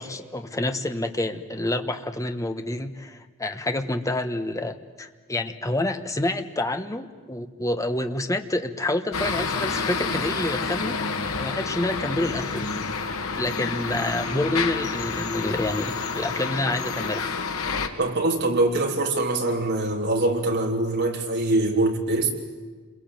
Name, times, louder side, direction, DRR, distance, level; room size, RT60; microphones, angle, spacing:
voice 1, 0.0-12.7 13.4-17.3, left 1 dB, 15° left, 8 dB, 1.2 m, -28 dB
sound 1, 9.1-17.9, left 4 dB, 80° left, 2.0 m, -29 dB
voice 2, 18.0-22.3, right 2 dB, 50° right, 1 dB, 3.6 m, -23 dB
28.0 x 22.0 x 9.0 m, 1.4 s
head